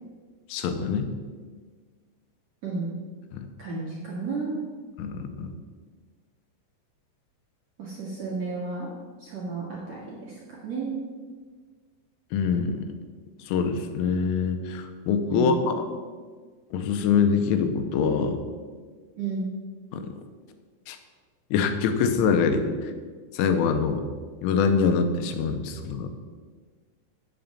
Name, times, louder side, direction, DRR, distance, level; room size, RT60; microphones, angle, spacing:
voice 1, 0.5-1.1 3.3-3.5 5.0-5.5 12.3-12.9 13.4-15.9 16.7-18.4 19.9-20.0 20.9-21.0 21.5-22.9 23.3-24.0 24.4-26.1, left 6 dB, 90° left, 7 dB, 3.4 m, -24 dB
voice 2, 2.6-2.9 3.6-4.7 7.8-8.9 9.2-10.3 10.6-11.1 15.3-15.8 19.2-19.5, right 4 dB, 55° right, -6 dB, 1.9 m, -32 dB
9.1 x 8.0 x 7.3 m, 1.5 s
omnidirectional pair, 5.7 m